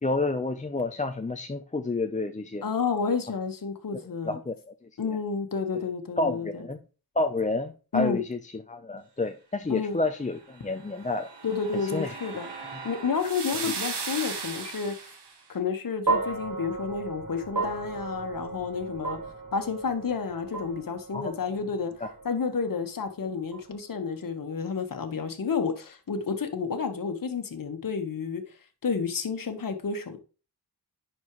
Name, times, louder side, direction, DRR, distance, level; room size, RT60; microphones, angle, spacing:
voice 1, 0.0-2.6 4.2-4.7 5.1-5.2 6.2-6.8 7.2-11.3 11.9-12.1 21.1-21.3, left 2 dB, 20° left, 0.6 m, -29 dB
voice 2, 2.6-4.4 5.0-6.7 7.9-8.2 9.7-10.0 11.4-12.5 12.8-15.1 15.5-19.2 19.5-28.6 28.8-30.2, left 5 dB, 55° left, 1.4 m, -30 dB
sound 1, 10.7-15.3, right 5 dB, 90° right, 1.6 m, -37 dB
sound 2, 16.1-24.4, right 3 dB, 50° right, 3.4 m, -35 dB
10.5 x 4.4 x 3.1 m
cardioid pair, 70°, 40 cm